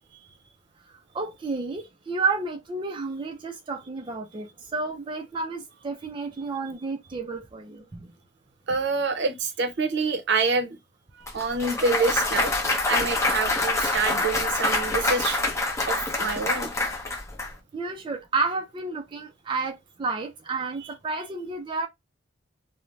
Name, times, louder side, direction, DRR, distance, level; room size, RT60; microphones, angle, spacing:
voice 1, 0.9-8.1 17.7-21.9, right 4 dB, 25° right, 0.4 m, -31 dB
voice 2, 8.7-10.8 11.3-12.5 12.9-15.4 15.8-16.7, right 4 dB, 65° right, 0.7 m, -26 dB
Clapping / Cheering / Applause, 11.3-17.5, left 2 dB, 15° left, 0.6 m, -26 dB
2.5 x 2.1 x 3.1 m
head